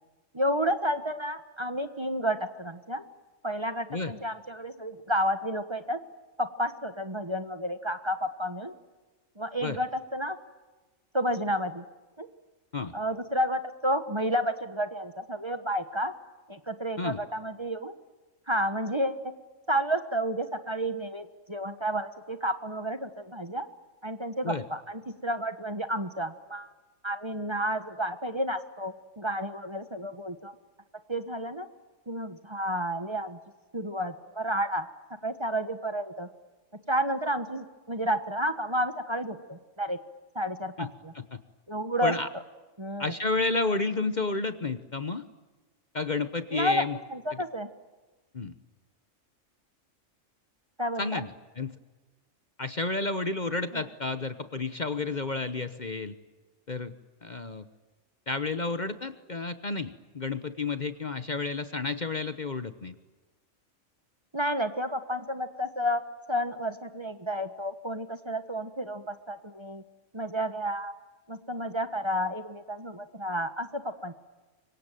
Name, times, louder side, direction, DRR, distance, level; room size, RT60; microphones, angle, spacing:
voice 1, 0.3-3.0 3.4-6.0 6.4-8.7 9.4-10.4 11.1-11.8 12.2-12.3 12.9-16.1 16.5-17.9 18.5-19.2 19.7-23.7 24.0-26.7 27.0-30.5 31.1-31.7 32.1-33.4 33.7-34.8 35.2-36.3 36.9-40.0 40.3-41.1 41.7-42.1 42.8-43.1 46.5-46.8 47.1-47.7 50.8-51.2 53.7-53.8 64.3-66.0 66.3-69.8 70.1-70.9 71.3-74.1, equal, 20° right, 9 dB, 1.3 m, -31 dB
voice 2, 43.0-45.2 45.9-47.0 47.3-47.4 48.3-48.5 51.0-51.7 52.6-56.2 56.7-56.9 57.2-57.6 58.3-62.9, left 3 dB, 35° left, 10 dB, 1.1 m, -31 dB
25.5 x 24.0 x 9.2 m, 1.2 s
omnidirectional pair, 1.4 m